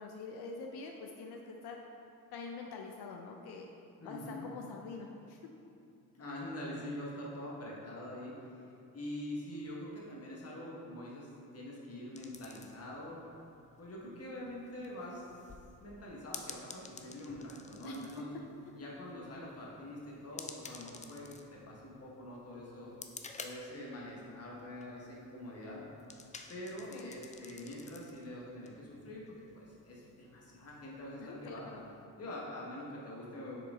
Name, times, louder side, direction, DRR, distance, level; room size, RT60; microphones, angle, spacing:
voice 1, 0.0-1.8 2.3-3.7 4.0-5.4 17.8-18.1 18.6-18.9 26.9-27.2 31.2-31.9, left 4 dB, 85° left, 2 dB, 0.6 m, -45 dB
voice 2, 4.0-4.5 6.1-8.7 8.9-13.2 13.8-15.2 15.8-18.3 18.7-22.9 23.4-25.8 26.5-29.3 29.5-31.7 32.2-33.6, left 1 dB, 40° left, -4 dB, 1.4 m, -45 dB
sound 1, 12.2-32.1, left 4 dB, 20° left, 0.3 m, -53 dB
6.7 x 4.8 x 3.7 m, 2.6 s
cardioid pair, 125°, 37 cm